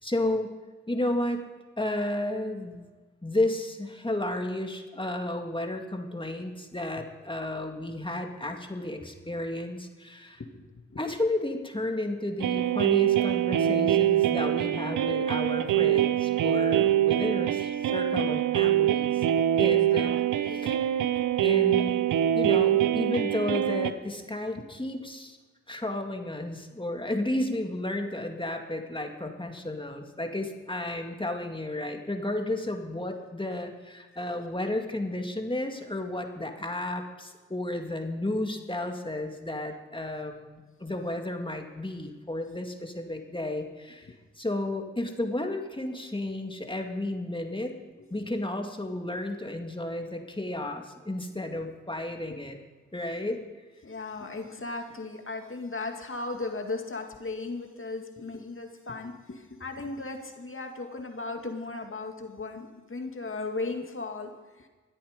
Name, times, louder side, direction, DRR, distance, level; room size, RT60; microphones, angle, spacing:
voice 1, 0.0-0.5 0.9-1.4 1.8-2.9 3.2-10.4 11.0-19.2 19.6-20.1 20.5-20.9 21.4-22.0 22.4-25.4 25.7-44.1 44.4-47.7 48.1-52.6 52.9-53.4, left 1 dB, 15° left, 3 dB, 2.2 m, -32 dB
voice 2, 10.4-11.0 19.5-20.2 20.5-20.8 21.2-21.3 24.6-24.7 44.1-44.2 48.0-48.1 52.3-52.4 53.2-53.4 53.8-64.7, left 3 dB, 40° left, 4 dB, 2.2 m, -37 dB
sound 1, 12.4-23.9, right 11 dB, 85° right, 0.7 m, -24 dB
23.5 x 8.5 x 5.2 m, 1.3 s
supercardioid pair, 40°, 31 cm